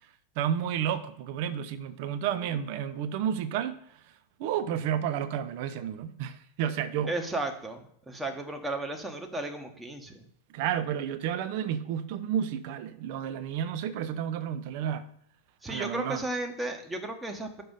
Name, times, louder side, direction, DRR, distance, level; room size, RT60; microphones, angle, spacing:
voice 1, 0.4-3.8 4.4-7.2 10.5-15.1 15.7-16.2, right 9 dB, 50° right, 0.5 m, -31 dB
voice 2, 7.1-10.3 15.6-17.6, right 2 dB, 10° right, 1.1 m, -34 dB
6.0 x 5.3 x 5.3 m
figure-of-eight pair, 90°, 0 cm